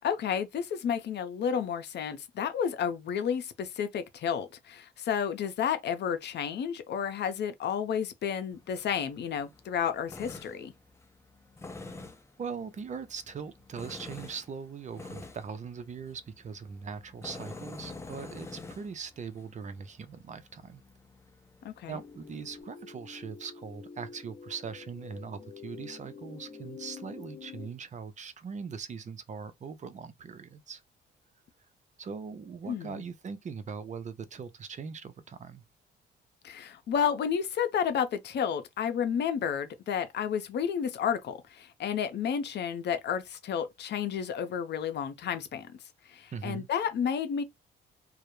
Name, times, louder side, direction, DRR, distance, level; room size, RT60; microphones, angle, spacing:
voice 1, 0.0-10.7 21.6-22.0 32.7-33.0 36.4-45.7 46.1-47.4, left 8 dB, 60° left, 0.6 m, -31 dB
Tools, 8.5-22.6, left 3 dB, 15° left, 0.5 m, -48 dB
voice 2, 12.4-20.8 21.9-30.8 32.0-35.6 46.3-46.7, right 6 dB, 35° right, 0.5 m, -41 dB
sound 1, 21.9-27.7, left 5 dB, 40° left, 0.9 m, -47 dB
2.2 x 2.0 x 3.0 m
cardioid pair, 90°, 20 cm